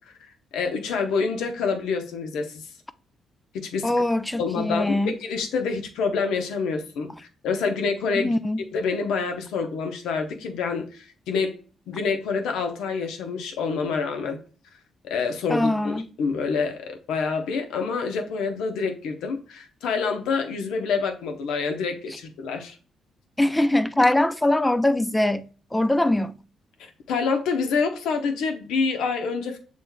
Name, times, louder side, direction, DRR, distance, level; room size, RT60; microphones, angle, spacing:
voice 1, 0.5-2.6 3.5-3.9 4.4-7.1 7.4-8.3 8.7-11.6 11.9-14.4 15.0-22.8 27.1-29.6, left 5 dB, 85° left, 0.8 m, -27 dB
voice 2, 3.8-5.2 8.2-8.6 15.5-16.1 23.4-26.4, left 1 dB, 10° left, 0.4 m, -22 dB
7.2 x 3.1 x 2.2 m
cardioid pair, 90°, 0 cm